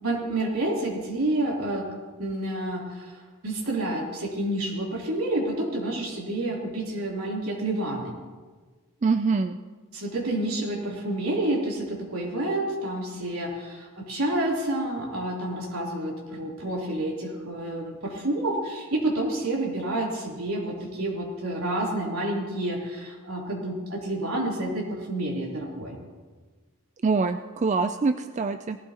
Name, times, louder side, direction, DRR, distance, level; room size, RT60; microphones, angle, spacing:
voice 1, 0.0-1.9 2.2-8.1 9.9-26.0, right 1 dB, 75° right, -3 dB, 3.3 m, -29 dB
voice 2, 9.0-9.6 27.0-28.8, right 4 dB, 30° right, 8 dB, 0.3 m, -24 dB
18.5 x 15.5 x 2.9 m, 1.4 s
head